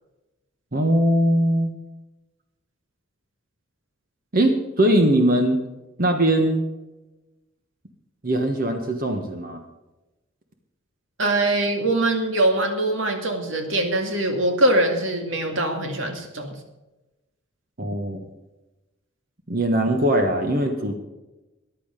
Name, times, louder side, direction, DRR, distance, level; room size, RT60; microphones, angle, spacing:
voice 1, 0.7-1.7 4.3-5.6 6.0-6.6 8.2-9.6 17.8-18.3 19.5-20.9, right 1 dB, 45° right, 4 dB, 1.3 m, -21 dB
voice 2, 11.2-16.5, right 1 dB, 65° right, 4 dB, 2.2 m, -22 dB
14.5 x 10.5 x 5.1 m, 1.0 s
head